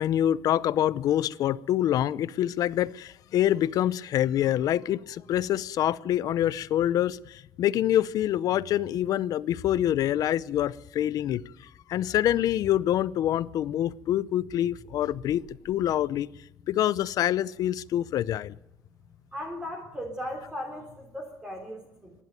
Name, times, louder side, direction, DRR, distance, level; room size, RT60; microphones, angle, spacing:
voice 1, 0.0-16.3 16.7-18.6, left 12 dB, 65° left, 0.7 m, -26 dB
sound 1, 8.3-21.1, right 4 dB, 70° right, 2.6 m, -56 dB
voice 2, 19.3-22.1, equal, 10° right, 3.1 m, -37 dB
26.5 x 11.5 x 9.3 m
cardioid pair, 160°, 7 cm